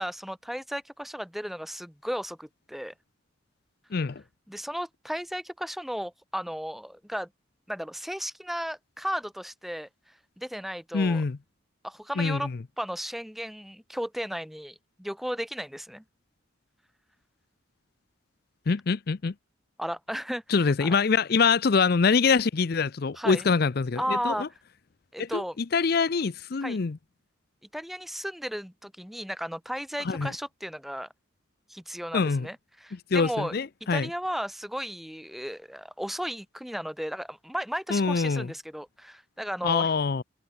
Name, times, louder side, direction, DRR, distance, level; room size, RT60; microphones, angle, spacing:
voice 1, 0.0-2.9 4.5-7.3 7.7-9.9 10.4-11.2 11.8-12.5 12.8-16.0 19.8-20.9 23.2-23.5 24.0-24.5 25.1-25.6 26.6-26.8 27.7-31.1 31.7-33.5 33.9-39.9, equal, ahead, 1.1 m, -34 dB
voice 2, 3.9-4.2 10.9-11.4 12.2-12.6 18.7-19.3 20.5-24.5 25.2-27.0 30.0-30.3 32.1-32.5 32.9-34.1 37.9-38.5 39.6-40.2, left 5 dB, 50° left, 0.5 m, -25 dB
head